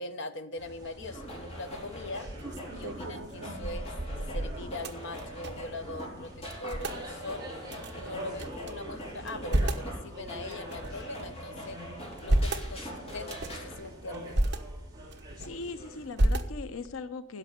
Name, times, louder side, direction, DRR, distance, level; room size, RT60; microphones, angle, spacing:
voice 1, 0.0-2.3 2.7-3.9 4.3-7.5 7.9-11.8 12.2-14.4, left 2 dB, 60° left, 9 dB, 0.9 m, -41 dB
sound 1, 0.6-16.1, right 1 dB, 20° right, 3.3 m, -46 dB
sound 2, 1.0-13.7, equal, 30° left, 4.5 m, -43 dB
sound 3, 1.2-1.5 2.0-5.8 6.0-6.1 6.4-7.0 7.7-8.7 9.2-9.9 10.5-11.4 12.0-12.7 13.2-13.7 14.1-14.6 15.1-15.7 16.1-16.9, right 1 dB, 55° right, 1.2 m, -31 dB
voice 2, 15.4-17.4, left 4 dB, 90° left, 11 dB, 0.8 m, -39 dB
11.0 x 6.4 x 9.1 m, 0.75 s
head